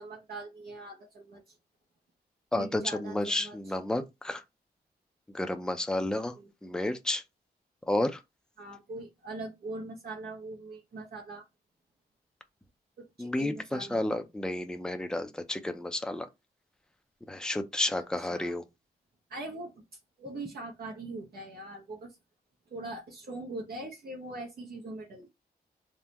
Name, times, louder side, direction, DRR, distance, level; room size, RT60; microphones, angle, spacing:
voice 1, 0.0-1.6 2.5-3.7 6.4-6.5 8.6-11.5 13.0-14.1 18.2-18.5 19.3-19.8 20.2-22.2 22.7-25.3, right 2 dB, 65° right, 0.8 m, -42 dB
voice 2, 2.5-4.4 5.3-6.3 6.6-7.2 7.9-8.2 13.2-16.3 17.3-18.6, left 1 dB, 5° left, 0.5 m, -31 dB
3.5 x 2.1 x 2.9 m
cardioid pair, 95°, 17 cm